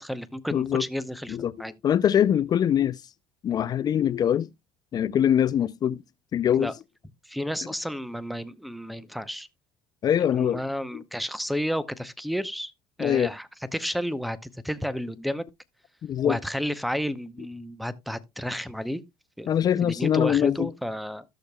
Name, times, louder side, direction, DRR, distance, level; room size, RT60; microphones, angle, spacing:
voice 1, 0.0-1.7 6.6-6.7 7.3-9.5 10.3-12.7 13.0-15.4 16.2-19.0 19.4-19.5 19.8-21.2, equal, ahead, 0.7 m, -31 dB
voice 2, 0.5-0.9 1.3-1.5 1.8-3.0 3.4-4.5 4.9-6.0 6.3-6.7 10.0-10.6 10.9-11.0 13.0-13.3 16.0-16.4 19.5-20.7, left 9 dB, 40° left, 0.4 m, -23 dB
15.0 x 6.5 x 2.2 m
supercardioid pair, 100°, 10 cm